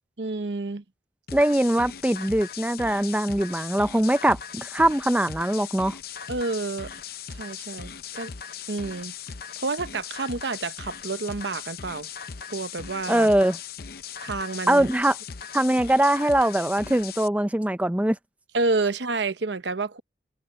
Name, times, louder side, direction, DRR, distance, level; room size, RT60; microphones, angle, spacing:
voice 1, 0.2-0.8 6.3-6.9 7.3-8.3 8.7-9.1 9.6-12.1 12.5-13.3 14.2-14.9 18.5-20.0, right 3 dB, 75° right, 0.9 m, -29 dB
sound 1, 1.3-17.3, left 7 dB, 55° left, 0.7 m, -39 dB
voice 2, 1.3-5.9 13.1-13.6 14.7-15.2 15.5-18.2, right 1 dB, 10° right, 0.5 m, -22 dB
head